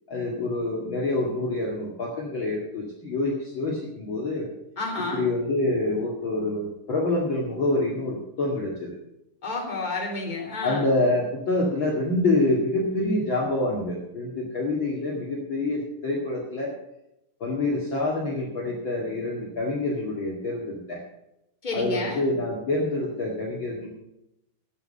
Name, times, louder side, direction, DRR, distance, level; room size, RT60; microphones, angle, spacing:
voice 1, 0.1-4.5 5.1-9.0 10.6-16.7 17.4-21.0 21.7-23.9, left 2 dB, 50° left, -3 dB, 1.5 m, -26 dB
voice 2, 4.8-5.2 9.4-10.9 21.6-22.2, left 2 dB, 10° left, -2 dB, 2.4 m, -30 dB
11.5 x 10.0 x 6.7 m, 0.84 s
omnidirectional pair, 5.6 m